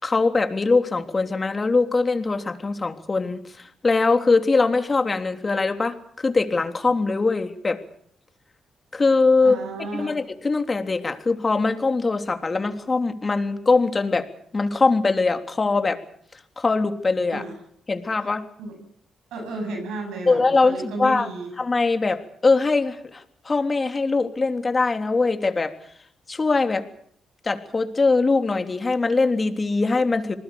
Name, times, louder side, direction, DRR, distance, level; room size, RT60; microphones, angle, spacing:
voice 1, 0.0-7.8 8.9-9.6 9.9-16.0 16.6-17.4 17.9-18.4 20.3-21.3 21.6-25.7 26.3-26.8 27.4-30.3, left 3 dB, 30° left, 7 dB, 3.3 m, -22 dB
voice 2, 9.4-10.2 17.3-17.6 18.2-18.3 18.6-18.8 19.3-21.5, right 2 dB, 90° right, 5 dB, 8.0 m, -33 dB
27.5 x 20.0 x 7.0 m, 0.65 s
cardioid pair, 70°, 0 cm